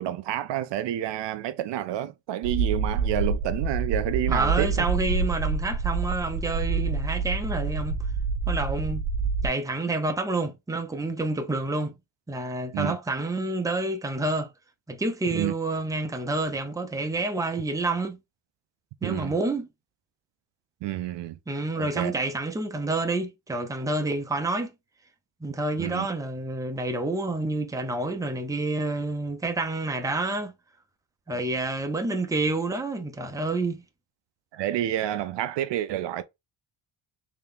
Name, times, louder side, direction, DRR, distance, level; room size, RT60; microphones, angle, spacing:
voice 1, 0.0-4.9 12.7-13.0 15.3-15.5 19.0-19.3 20.8-21.4 21.8-22.1 25.8-26.1 31.3-31.4 34.5-36.2, right 12 dB, 70° right, 0.5 m, -29 dB
sound 1, 2.4-9.5, right 4 dB, 85° right, 0.9 m, -27 dB
voice 2, 4.3-8.0 8.5-9.1 9.4-11.9 12.3-14.5 14.9-18.2 19.0-19.7 21.5-24.7 25.4-30.5 31.3-33.8, right 2 dB, 10° right, 0.6 m, -28 dB
3.5 x 2.9 x 3.5 m
cardioid pair, 100°, 46 cm